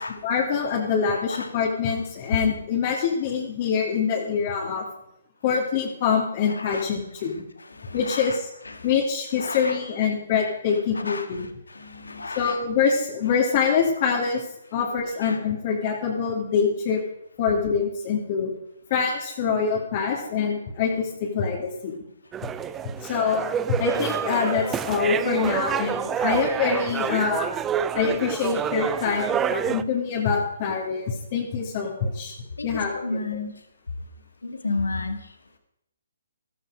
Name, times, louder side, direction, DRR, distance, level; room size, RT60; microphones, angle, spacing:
voice 1, 0.0-4.8 5.4-7.4 7.9-8.5 8.8-11.5 12.4-14.4 14.7-17.0 17.4-18.5 18.9-21.9 23.0-27.5 27.9-33.2, left 6 dB, 40° left, -1 dB, 2.6 m, -25 dB
voice 2, 6.5-6.8 7.6-8.4 8.7-8.9 9.4-9.8 10.9-11.3 11.7-12.6 14.8-14.9 15.2-15.4 32.6-33.5 34.4-35.3, left 3 dB, 85° left, 7 dB, 2.1 m, -32 dB
sound 1, 22.3-29.8, right 8 dB, 15° right, 0.5 m, -28 dB
14.0 x 13.0 x 4.9 m, 0.78 s
hypercardioid pair, 145°, 0 cm